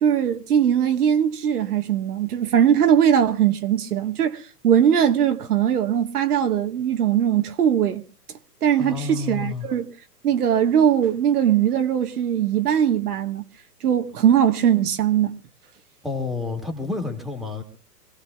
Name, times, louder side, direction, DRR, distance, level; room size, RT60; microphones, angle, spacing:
voice 1, 0.0-8.0 8.6-9.9 10.2-13.4 13.8-15.4, right 9 dB, 65° right, 1.4 m, -20 dB
voice 2, 8.8-9.7 16.0-17.6, left 3 dB, ahead, 1.8 m, -29 dB
26.5 x 17.0 x 2.3 m
hypercardioid pair, 135°, 49 cm